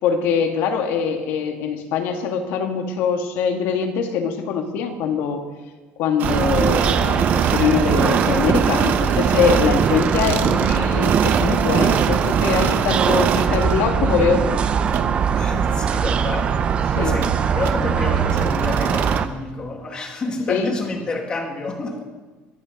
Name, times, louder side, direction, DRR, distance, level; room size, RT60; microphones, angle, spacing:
voice 1, 0.0-5.4 6.0-14.6 16.9-17.1 20.5-20.7, left 6 dB, 60° left, 5 dB, 2.0 m, -23 dB
sound 1, 6.2-19.3, right 7 dB, 25° right, 0.6 m, -20 dB
sound 2, 6.2-13.8 14.9-15.1 17.2-17.4 17.6-17.8 18.3-19.2, right 9 dB, 45° right, 1.0 m, -26 dB
voice 2, 15.3-22.0, left 3 dB, 20° left, 3 dB, 2.0 m, -29 dB
22.0 x 11.0 x 5.4 m, 1.3 s
cardioid pair, 175°, 4 cm